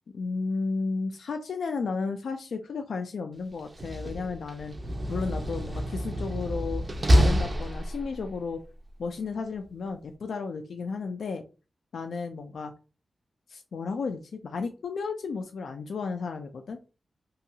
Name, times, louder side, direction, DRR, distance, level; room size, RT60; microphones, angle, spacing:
voice 1, 0.1-4.7 5.1-6.8 7.1-8.6 9.0-11.4 11.9-12.7 13.5-16.8, left 4 dB, 75° left, 5 dB, 0.3 m, -33 dB
Slam, 3.6-8.3, equal, 30° right, 0.4 m, -27 dB
2.7 x 2.3 x 2.6 m, 0.32 s
wide cardioid pair, 120°, 0 cm